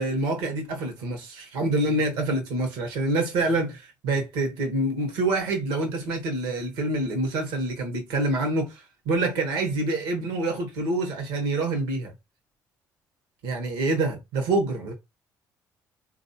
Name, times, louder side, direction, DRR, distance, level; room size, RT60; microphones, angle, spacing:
voice 1, 0.0-12.1 13.4-14.9, right 2 dB, 85° right, 1.1 m, -26 dB
3.5 x 2.6 x 2.7 m
supercardioid pair, 65°, 8 cm